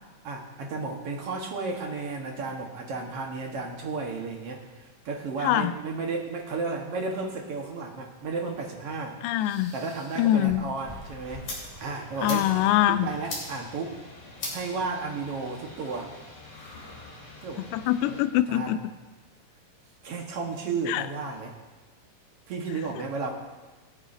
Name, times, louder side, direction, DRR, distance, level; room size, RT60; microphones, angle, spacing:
voice 1, 0.2-9.2 9.7-11.5 11.8-12.5 12.9-14.0 14.5-16.1 17.4-17.7 18.1-18.2 18.5-18.8 20.0-21.5 22.5-23.3, right 4 dB, 55° right, 1 dB, 2.0 m, -33 dB
voice 2, 5.4-5.7 9.2-9.8 10.2-10.7 12.2-13.1 17.7-18.8 20.9-21.1, left 13 dB, 85° left, 13 dB, 2.1 m, -24 dB
sound 1, 9.4-11.8 12.1-12.7, left 1 dB, 10° left, 2.4 m, -44 dB
sound 2, 10.8-18.2, left 2 dB, 65° left, 4.8 m, -42 dB
26.5 x 9.1 x 2.7 m, 1.2 s
omnidirectional pair, 3.8 m